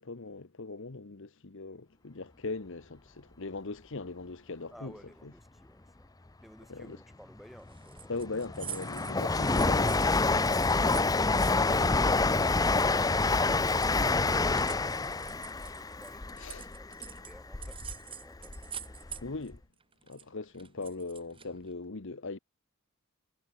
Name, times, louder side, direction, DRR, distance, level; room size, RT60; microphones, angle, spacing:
voice 1, 0.0-4.9 6.7-7.0 8.1-10.0 11.7-11.9 16.4-16.7 19.2-19.6 20.1-22.4, left 3 dB, 60° left, 1.1 m, -40 dB
voice 2, 4.7-8.1 11.5-19.2, equal, ahead, 4.9 m, -56 dB
sound 1, 7.7-12.4 12.7-17.3 17.6-19.5 19.8-21.7, right 8 dB, 25° right, 4.1 m, -46 dB
Train, 7.8-17.9 18.4-19.3 19.5-19.6, left 3 dB, 15° left, 0.6 m, -27 dB
head